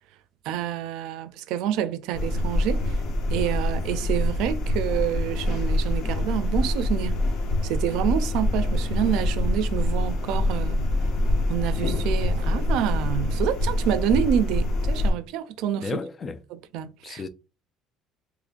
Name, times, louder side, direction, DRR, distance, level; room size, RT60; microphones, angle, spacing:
voice 1, 0.4-3.0 3.3-7.2 7.6-10.8 11.5-16.0 16.5-17.2, right 10 dB, 75° right, 0.4 m, -28 dB
sound 1, 2.1-15.1, left 1 dB, 60° left, 0.8 m, -25 dB
voice 2, 15.8-16.4 17.0-17.3, left 4 dB, 25° left, 0.4 m, -32 dB
3.7 x 3.0 x 2.5 m
cardioid pair, 155°, 0 cm